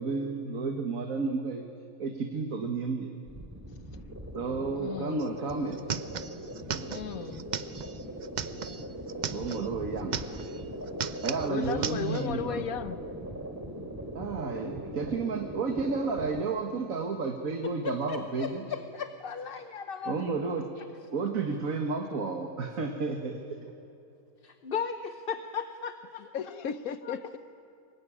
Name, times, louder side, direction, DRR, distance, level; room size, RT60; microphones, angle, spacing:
voice 1, 0.0-1.6 2.0-3.1 4.3-5.8 6.7-7.0 9.1-10.4 11.2-12.6 14.2-18.6 20.0-20.7 21.1-23.6, right 4 dB, 70° right, 1.9 m, -32 dB
sound 1, 3.3-16.4, right 1 dB, 10° right, 2.7 m, -40 dB
voice 2, 4.7-5.2 6.9-7.5 11.4-13.0 26.2-27.4, left 8 dB, 75° left, 1.4 m, -35 dB
sound 2, 5.2-5.3 5.5-9.7 10.0-10.6 10.9-12.3, right 7 dB, 45° right, 0.6 m, -36 dB
voice 3, 17.8-20.3 20.8-20.9 24.4-26.2 27.0-27.2, left 6 dB, 45° left, 1.0 m, -36 dB
24.0 x 20.5 x 10.0 m
omnidirectional pair, 1.5 m